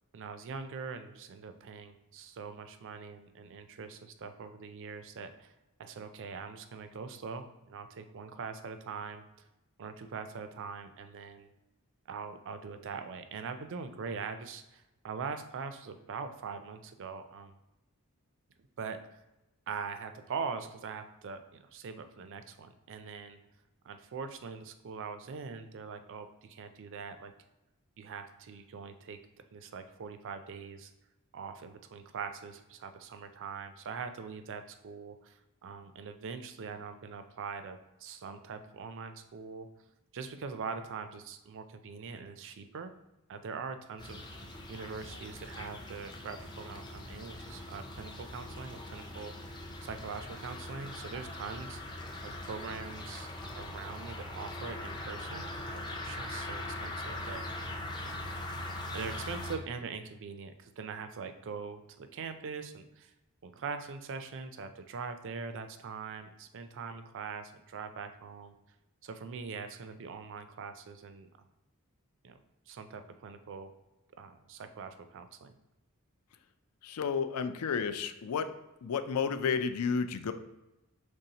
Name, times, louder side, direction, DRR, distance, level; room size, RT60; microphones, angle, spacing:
voice 1, 0.1-5.5 5.8-9.2 9.8-11.5 12.1-17.5 18.8-19.0 19.7-23.4 23.8-27.3 28.0-29.2 29.5-30.9 31.3-39.7 40.1-42.9 43.3-44.2 44.7-51.8 52.2-53.3 53.5-57.7 58.0-58.4 58.9-63.1 63.4-68.5 69.0-71.3 72.2-72.4 72.7-73.7 74.2-75.6, right 5 dB, 60° right, 9 dB, 0.4 m, -42 dB
sound 1, 44.0-59.6, left 1 dB, 20° left, 0.5 m, -41 dB
voice 2, 76.8-78.5 78.8-80.3, left 6 dB, 80° left, 10 dB, 0.4 m, -31 dB
5.3 x 3.2 x 2.8 m, 0.95 s
head